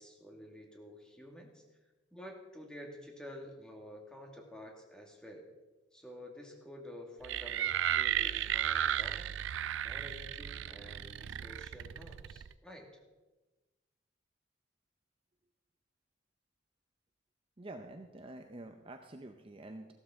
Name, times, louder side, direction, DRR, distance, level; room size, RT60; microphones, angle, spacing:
voice 1, 0.0-1.6 2.1-5.5 5.9-9.3 9.8-12.9, equal, 5° left, 1 dB, 1.8 m, -50 dB
sound 1, 7.2-12.5, right 10 dB, 80° right, 0.4 m, -34 dB
voice 2, 17.6-19.9, right 2 dB, 30° right, 5 dB, 0.6 m, -48 dB
14.5 x 12.5 x 3.6 m, 1.2 s
head